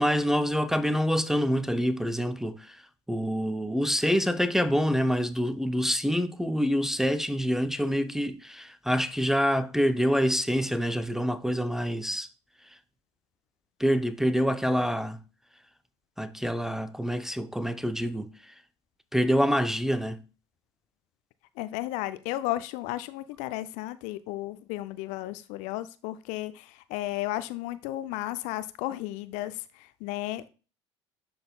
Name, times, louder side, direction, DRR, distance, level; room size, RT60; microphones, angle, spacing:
voice 1, 0.0-2.8 3.1-12.3 13.8-15.2 16.2-18.5 19.1-20.2, equal, 5° right, 0.4 m, -26 dB
voice 2, 21.6-30.5, left 15 dB, 55° left, 0.4 m, -34 dB
11.5 x 3.9 x 2.3 m
figure-of-eight pair, 65°, 15 cm